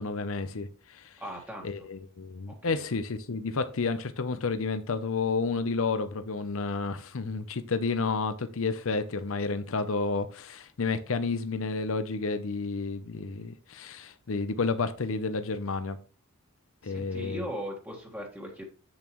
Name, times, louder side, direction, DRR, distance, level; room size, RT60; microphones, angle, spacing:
voice 1, 0.0-1.1 1.6-16.0 16.8-17.5, left 4 dB, 65° left, 0.7 m, -31 dB
voice 2, 1.2-1.9 2.5-2.8 16.8-18.7, equal, 10° right, 1.6 m, -39 dB
8.2 x 7.1 x 3.1 m
head